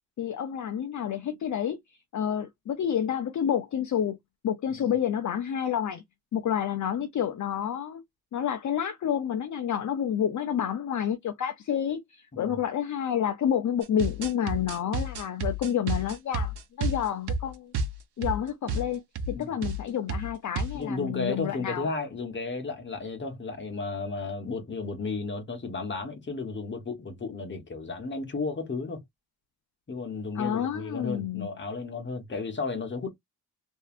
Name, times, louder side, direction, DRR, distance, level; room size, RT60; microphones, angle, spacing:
voice 1, 0.2-4.2 4.4-6.0 6.3-8.0 8.3-17.7 18.2-21.9 30.4-31.5, left 9 dB, 50° left, 0.5 m, -29 dB
sound 1, 13.8-18.4 18.7-18.9 19.2-19.4 19.6-19.8 20.1-20.8, right 2 dB, 85° right, 0.8 m, -31 dB
voice 2, 20.7-29.0 29.9-33.1, left 3 dB, 30° left, 1.0 m, -33 dB
3.2 x 2.7 x 2.4 m
wide cardioid pair, 170°, 38 cm